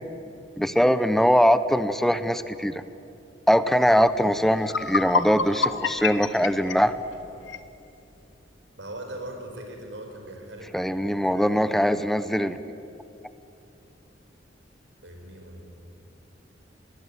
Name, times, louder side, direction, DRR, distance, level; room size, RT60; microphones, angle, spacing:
voice 1, 0.6-2.8 3.5-7.0 10.7-12.6, equal, ahead, 12 dB, 0.7 m, -22 dB
sound 1, 4.2-4.3 4.6-7.7, left 5 dB, 85° left, 1.0 m, -28 dB
voice 2, 8.8-10.7 11.0-11.7 12.3-12.6 15.0-15.6, right 1 dB, 75° right, 3 dB, 5.1 m, -40 dB
21.5 x 19.5 x 9.8 m, 2.7 s
head